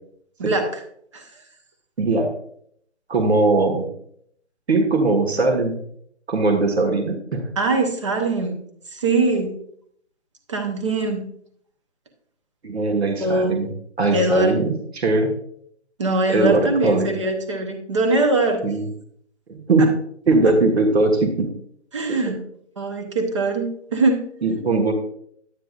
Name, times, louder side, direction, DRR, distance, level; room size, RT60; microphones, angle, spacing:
voice 1, 0.4-0.7 1.1-1.2 7.6-8.6 8.9-9.5 10.5-11.2 13.2-13.5 14.1-14.5 16.0-18.6 19.8-19.9 20.4-20.5 21.9-22.4 22.8-24.2, right 2 dB, 25° right, 5 dB, 0.9 m, -22 dB
voice 2, 2.0-2.3 3.1-3.9 4.7-5.8 6.3-7.5 12.6-13.7 14.0-15.3 16.3-17.1 18.6-18.9 19.5-19.9 20.3-21.5 22.1-22.3 24.4-24.9, right 3 dB, 60° right, 3 dB, 1.6 m, -20 dB
10.0 x 9.0 x 2.4 m, 0.65 s
figure-of-eight pair, 155°, 36 cm